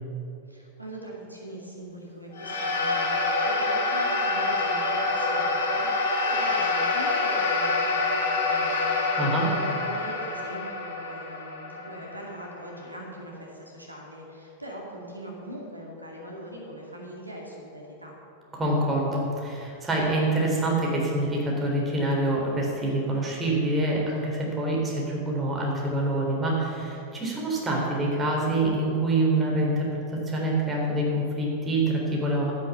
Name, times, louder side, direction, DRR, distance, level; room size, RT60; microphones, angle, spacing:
voice 1, 0.5-18.1, right 1 dB, 85° right, -2 dB, 2.3 m, -41 dB
sound 1, 2.3-12.9, left 3 dB, 55° left, 2.9 m, -26 dB
voice 2, 18.5-32.5, right 1 dB, 15° right, -2 dB, 3.7 m, -26 dB
12.5 x 9.7 x 7.1 m, 2.8 s
figure-of-eight pair, 90°, 0 cm